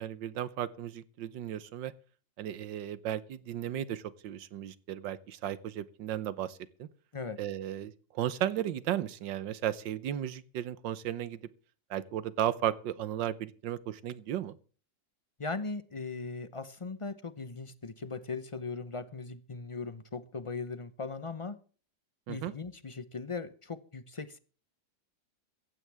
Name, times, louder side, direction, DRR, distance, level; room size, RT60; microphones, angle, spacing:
voice 1, 0.0-1.9 2.4-6.9 7.4-11.4 11.9-14.6 22.3-22.5, right 11 dB, 85° right, 1.6 m, -35 dB
voice 2, 15.4-21.6 22.3-24.4, left 4 dB, 40° left, 0.4 m, -39 dB
15.5 x 15.0 x 3.5 m
omnidirectional pair, 1.9 m